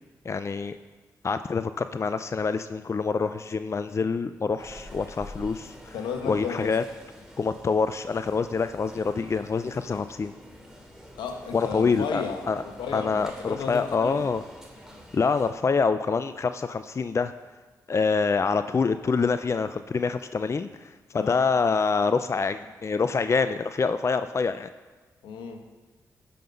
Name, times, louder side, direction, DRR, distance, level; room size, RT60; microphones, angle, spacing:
voice 1, 0.2-0.8 1.2-6.0 6.3-6.8 7.4-10.3 11.5-12.6 12.9-14.4 15.1-17.3 17.9-24.7, left 4 dB, 35° left, 11 dB, 0.5 m, -26 dB
sound 1, 4.6-15.5, left 1 dB, 5° right, 2.7 m, -47 dB
voice 2, 5.9-6.8 11.1-14.2 21.1-21.5 25.2-25.6, left 6 dB, 80° left, 6 dB, 1.1 m, -34 dB
14.0 x 5.6 x 5.3 m, 1.3 s
hypercardioid pair, 45°, 8 cm